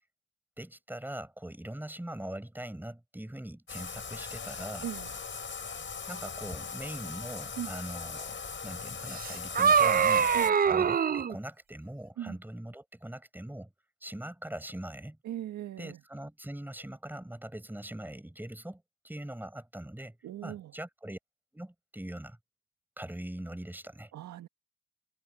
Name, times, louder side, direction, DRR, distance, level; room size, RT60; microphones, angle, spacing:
voice 1, 0.6-4.9 6.1-10.3 10.7-13.7 14.0-15.2 15.8-20.2 20.4-21.2 21.5-22.4 23.0-24.1, right 1 dB, 5° right, 6.4 m, -42 dB
Bathtub (filling or washing), 3.7-10.5, left 5 dB, 40° left, 6.2 m, -40 dB
voice 2, 4.8-5.1 7.6-7.7 10.3-10.5 12.2-12.4 15.2-16.0 20.2-20.7 24.1-24.5, right 11 dB, 75° right, 1.7 m, -39 dB
sound 1, 9.1-11.3, right 7 dB, 30° right, 0.5 m, -24 dB
cardioid pair, 90°, 30 cm